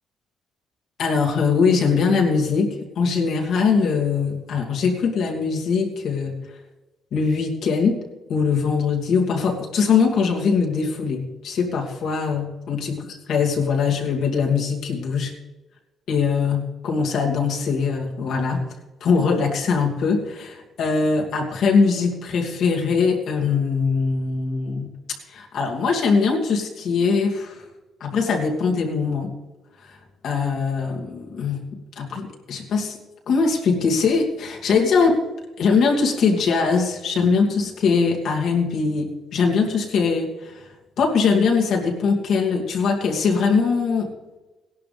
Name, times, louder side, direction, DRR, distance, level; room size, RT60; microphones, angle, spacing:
voice 1, 1.0-6.3 7.1-8.0 8.3-13.0 13.3-15.3 16.1-18.6 19.0-25.0 25.3-27.7 28.0-29.3 29.8-30.0 30.2-31.7 32.0-33.0 33.3-35.2 35.6-40.7 41.0-44.1, left 5 dB, 70° left, 0 dB, 2.5 m, -21 dB
17.0 x 11.5 x 3.5 m, 1.1 s
cardioid pair, 90°, 0 cm